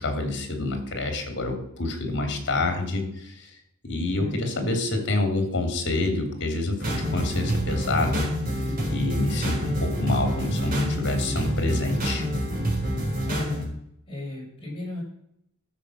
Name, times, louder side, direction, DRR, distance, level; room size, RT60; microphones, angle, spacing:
voice 1, 0.0-3.5 3.8-8.3 8.9-12.2, left 2 dB, 55° left, 4 dB, 2.8 m, -27 dB
voice 2, 4.2-4.7 13.2-13.7 14.1-15.0, left 1 dB, 25° left, -4 dB, 6.1 m, -36 dB
sound 1, 6.8-13.6, equal, 40° right, 4.4 m, -27 dB
13.5 x 6.9 x 6.3 m, 0.73 s
head